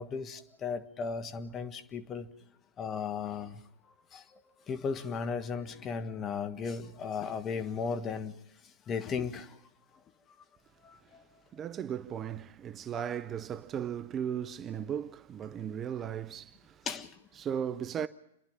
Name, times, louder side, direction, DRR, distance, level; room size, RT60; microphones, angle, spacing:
voice 1, 0.0-2.3 2.8-4.4 4.7-9.6 10.8-11.2 16.8-17.2, left 5 dB, 25° left, 1.4 m, -36 dB
voice 2, 11.5-16.9 17.4-18.1, right 8 dB, 25° right, 0.7 m, -36 dB
29.5 x 11.0 x 8.9 m
hypercardioid pair, 110°, 0 cm